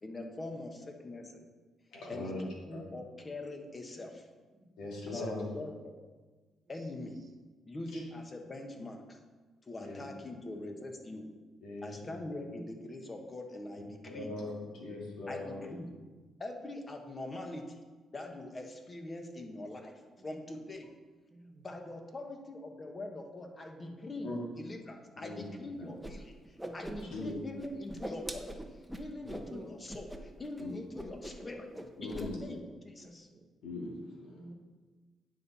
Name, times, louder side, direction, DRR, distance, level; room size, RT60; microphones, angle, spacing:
voice 1, 0.0-1.4 2.1-4.3 5.1-5.9 6.7-7.2 7.7-9.2 9.7-11.3 11.8-14.3 15.3-15.9 16.4-17.8 18.1-20.9 21.6-28.6 28.9-31.7 32.0-33.3, left 2 dB, 30° left, 3 dB, 1.2 m, -43 dB
voice 2, 1.9-2.4 2.7-2.8 4.8-5.4 7.9-8.0 9.8-10.0 10.5-10.6 11.6-12.1 14.0-15.6 24.2-24.4 25.1-25.4 25.7-25.9 27.1-27.3 30.6-30.7 32.0-32.4 33.6-33.9 34.2-34.4, left 2 dB, 85° left, -3 dB, 2.3 m, -40 dB
voice 3, 4.5-4.9 10.1-10.3 12.3-12.7 20.2-20.4 21.3-21.7 23.7-24.0 26.6-27.2 29.4-29.7 31.0-31.1 31.4-31.6 33.0-33.4 34.3-34.5, right 1 dB, 45° right, 2 dB, 1.2 m, -50 dB
Whoosh swoosh swish, 26.0-26.1 26.4-27.3 27.6-29.5 29.9-30.2 30.4-30.6 31.0-31.5 31.7-32.3, equal, 5° right, 0.8 m, -42 dB
9.5 x 5.6 x 4.2 m, 1.3 s
cardioid pair, 90°, 0 cm